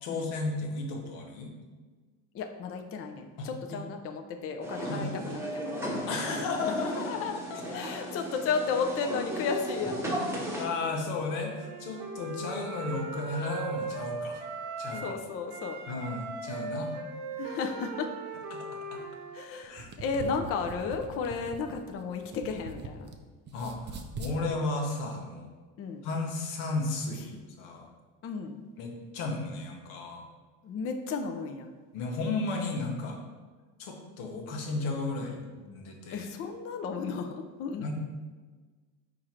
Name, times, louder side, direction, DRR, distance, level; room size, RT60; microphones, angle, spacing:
voice 1, 0.0-1.5 3.4-3.8 4.9-5.1 6.1-7.2 10.6-14.4 14.8-15.1 15.9-16.9 18.5-19.0 19.7-19.9 20.3-20.4 23.5-25.5 26.0-27.9 28.8-30.2 31.9-33.2 33.8-36.3 37.8-37.9, left 3 dB, 80° left, 2 dB, 1.0 m, -34 dB
voice 2, 2.3-6.4 6.8-10.1 14.9-15.8 17.4-18.1 19.3-23.1 25.8-26.1 28.2-28.6 30.6-31.7 36.1-37.9, left 5 dB, 35° left, 5 dB, 0.4 m, -34 dB
sound 1, 4.6-10.7, right 1 dB, 5° right, 0.9 m, -35 dB
Wind instrument woodwind instrument, 11.5-15.2 15.5-19.5, right 3 dB, 75° right, 0.9 m, -38 dB
sound 2, 19.6-23.2 23.5-24.4, right 3 dB, 25° right, 0.4 m, -42 dB
4.6 x 2.5 x 4.3 m, 1.4 s
supercardioid pair, 90°, 43 cm